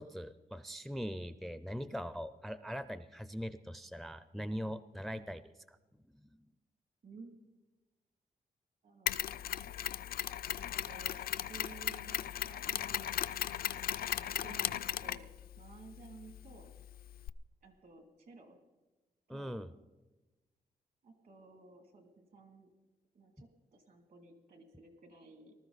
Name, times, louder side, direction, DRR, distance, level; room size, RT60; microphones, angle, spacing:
voice 1, 0.0-5.4 5.7-5.8 19.3-19.7, equal, ahead, 14 dB, 0.4 m, -41 dB
voice 2, 8.8-9.6 10.6-12.1 12.4-13.2 14.1-15.3 15.6-16.7 17.6-18.6 19.3-19.6 21.0-22.7 23.1-25.5, right 3 dB, 65° right, 5 dB, 2.5 m, -55 dB
Mechanisms, 9.1-17.3, left 11 dB, 75° left, 0.4 m, -37 dB
19.5 x 13.0 x 4.0 m, 1.1 s
wide cardioid pair, 135°, 15 cm